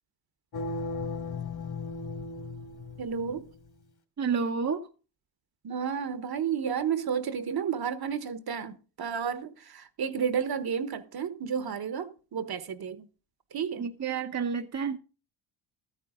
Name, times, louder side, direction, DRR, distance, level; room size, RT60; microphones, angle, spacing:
sound 1, 0.5-3.6, left 3 dB, 50° left, 2.6 m, -36 dB
voice 1, 3.0-3.5 5.6-13.1 13.5-13.9, right 7 dB, 50° right, 1.4 m, -32 dB
voice 2, 4.2-4.9 13.8-15.0, right 6 dB, 35° right, 1.0 m, -30 dB
13.0 x 9.6 x 3.8 m
cardioid pair, 80°, 47 cm